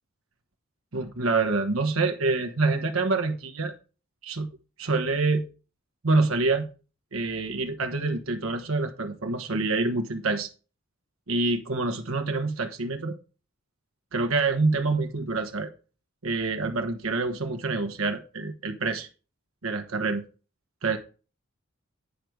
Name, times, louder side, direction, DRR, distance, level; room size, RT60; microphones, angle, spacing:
voice 1, 0.9-3.7 4.2-4.5 4.8-5.4 6.0-6.7 7.1-10.5 11.3-13.1 14.1-15.7 16.2-19.1 19.6-20.2 20.8-21.0, right 3 dB, 80° right, 5 dB, 1.2 m, -26 dB
10.0 x 5.0 x 4.7 m, 0.34 s
head